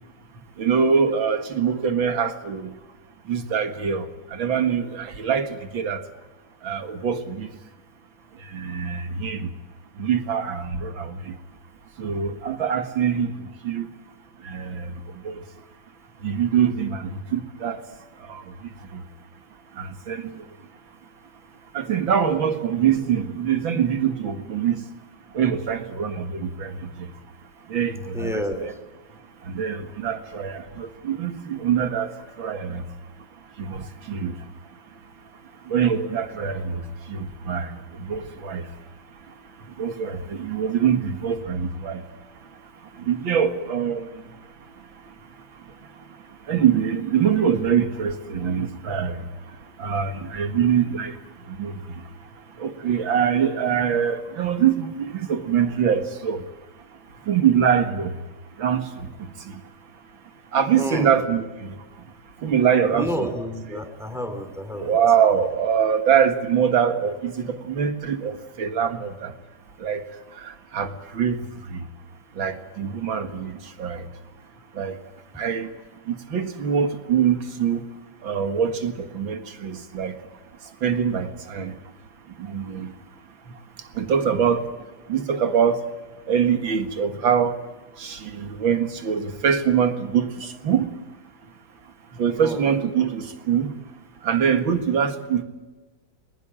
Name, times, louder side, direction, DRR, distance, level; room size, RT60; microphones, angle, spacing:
voice 1, 0.6-2.7 3.3-6.0 6.6-7.5 8.4-9.5 10.0-11.4 12.0-13.9 14.4-15.4 16.2-17.8 18.2-19.0 19.7-20.5 21.7-24.9 25.3-27.1 27.7-28.7 29.4-32.8 33.6-34.4 35.6-38.8 39.3-42.0 42.9-44.4 45.0-45.1 45.5-52.3 52.6-56.5 57.2-58.2 58.6-59.6 60.5-61.8 62.4-63.3 63.7-63.8 64.7-69.3 69.8-70.1 70.3-71.9 72.3-74.1 74.7-75.0 75.3-75.7 76.1-77.9 78.2-80.2 80.6-81.8 82.3-82.9 83.5-84.8 85.1-85.9 86.3-87.6 88.0-90.9 92.1-93.7 94.2-95.4, right 7 dB, 80° right, 8 dB, 2.6 m, -24 dB
voice 2, 28.1-28.7 60.7-61.2 62.9-64.9 92.4-92.7, equal, ahead, 7 dB, 2.9 m, -30 dB
21.0 x 20.5 x 8.9 m, 1.2 s
omnidirectional pair, 2.1 m